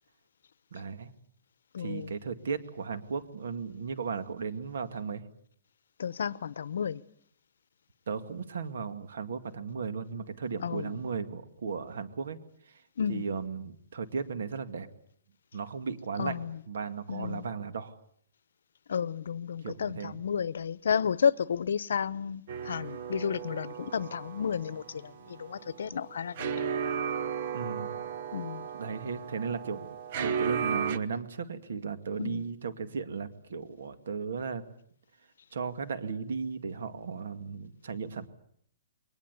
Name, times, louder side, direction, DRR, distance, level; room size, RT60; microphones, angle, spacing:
voice 1, 0.7-1.1 1.8-5.2 8.1-12.4 13.1-14.9 15.5-16.4 16.7-18.0 19.6-20.2 27.5-28.0 28.7-34.6 35.5-38.3, right 5 dB, 75° right, 2.3 m, -36 dB
voice 2, 1.7-2.1 6.0-7.0 10.6-11.0 13.0-13.2 16.2-16.6 17.1-17.5 18.9-26.7 28.3-28.7 32.2-32.4, left 7 dB, 75° left, 0.9 m, -32 dB
sound 1, 22.5-31.0, right 7 dB, 40° right, 1.0 m, -35 dB
22.5 x 20.0 x 8.3 m
hypercardioid pair, 170°, 0 cm